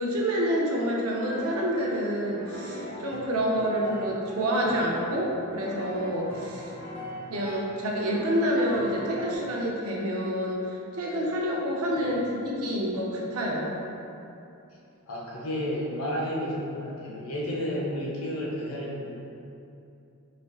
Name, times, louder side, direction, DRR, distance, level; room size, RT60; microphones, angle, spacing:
voice 1, 0.0-6.7 7.3-13.7, equal, 70° right, -3 dB, 0.6 m, -28 dB
sound 1, 1.2-1.9 2.2-9.4, left 1 dB, 10° left, 0.5 m, -41 dB
voice 2, 15.1-19.2, equal, 65° left, -4 dB, 0.6 m, -32 dB
4.1 x 2.5 x 2.3 m, 2.7 s
head